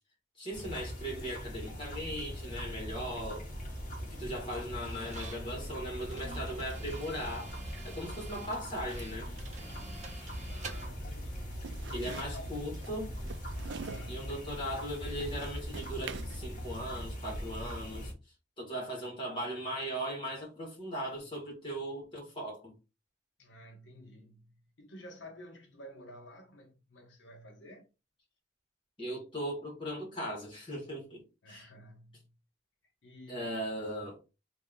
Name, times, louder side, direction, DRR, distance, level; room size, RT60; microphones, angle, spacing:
voice 1, 0.4-3.5 4.0-9.3 11.9-13.2 14.1-18.1 18.6-22.7 29.0-31.7 33.3-34.2, equal, 25° left, 1.7 m, -38 dB
sound 1, 0.5-18.1, equal, 40° left, 1.4 m, -41 dB
sound 2, 4.8-10.9, right 4 dB, 40° right, 0.7 m, -49 dB
voice 2, 10.5-12.6 13.7-14.3 23.4-27.9 31.4-32.3 33.0-33.5, equal, 75° left, 0.9 m, -51 dB
sound 3, 11.3-16.4, right 6 dB, 70° right, 0.3 m, -47 dB
3.2 x 2.8 x 3.9 m
head